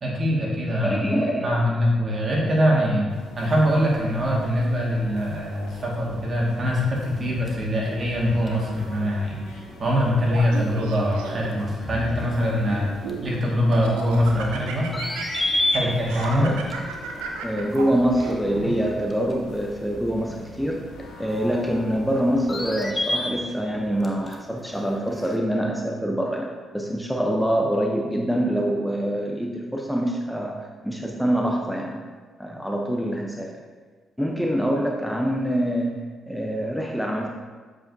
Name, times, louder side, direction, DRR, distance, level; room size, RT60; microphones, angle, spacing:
voice 1, 0.0-1.0 1.4-3.1 3.4-12.9 13.2-14.9 15.7-16.5, equal, 45° right, -3 dB, 1.9 m, -23 dB
voice 2, 0.8-1.6 16.3-16.6 17.4-32.0 32.4-33.5 34.2-36.0 36.3-37.3, equal, ahead, 0 dB, 0.7 m, -25 dB
sound 1, 3.1-22.7, left 2 dB, 80° left, 1.0 m, -44 dB
sound 2, 6.7-25.4, left 2 dB, 30° left, 1.0 m, -35 dB
Laughter, 10.3-11.6 12.2-13.3 13.7-18.7, right 5 dB, 85° right, 0.6 m, -34 dB
7.4 x 5.0 x 2.7 m, 1.4 s
supercardioid pair, 50°, 0 cm